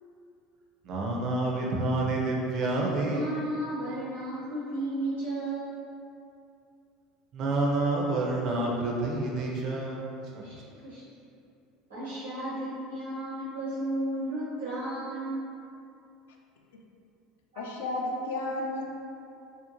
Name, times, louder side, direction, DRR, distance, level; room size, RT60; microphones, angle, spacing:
voice 1, 0.8-3.3 7.3-10.1, right 2 dB, 55° right, -2 dB, 0.4 m, -28 dB
voice 2, 3.1-5.7 10.4-10.5 10.8-11.0 11.9-15.3 17.5-17.6, right 1 dB, 85° right, -12 dB, 1.0 m, -33 dB
voice 3, 17.6-18.8, left 1 dB, 80° left, 1 dB, 0.3 m, -32 dB
2.5 x 2.1 x 2.8 m, 2.6 s
hypercardioid pair, 80°, 0 cm